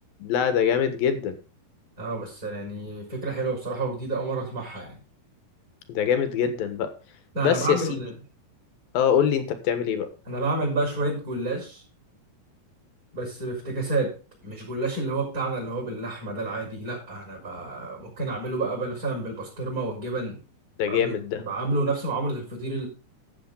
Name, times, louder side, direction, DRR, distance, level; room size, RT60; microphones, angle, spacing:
voice 1, 0.2-1.4 5.9-6.9 7.4-8.0 8.9-10.1 20.8-21.4, left 8 dB, 70° left, 10 dB, 3.1 m, -24 dB
voice 2, 2.0-5.0 7.3-8.1 10.3-11.8 13.1-14.1 14.4-20.4 20.9-22.9, right 2 dB, 20° right, -4 dB, 5.6 m, -29 dB
13.5 x 8.4 x 4.0 m, 0.33 s
omnidirectional pair, 4.5 m